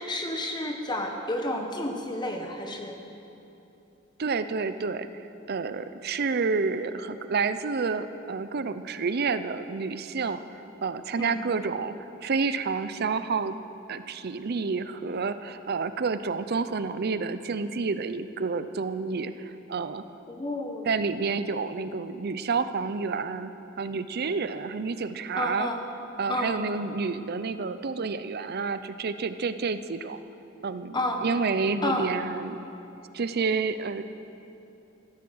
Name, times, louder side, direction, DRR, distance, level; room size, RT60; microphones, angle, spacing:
voice 1, 0.0-3.0 11.2-11.4 20.3-20.9 25.4-25.8 26.3-26.6 30.9-31.2 31.8-32.1, left 1 dB, 20° left, 3 dB, 1.0 m, -30 dB
voice 2, 4.2-10.4 10.8-13.6 13.9-20.0 20.8-25.7 26.2-30.2 30.6-32.6 33.1-34.0, right 4 dB, 50° right, 12 dB, 0.5 m, -29 dB
15.0 x 13.0 x 6.3 m, 2.8 s
head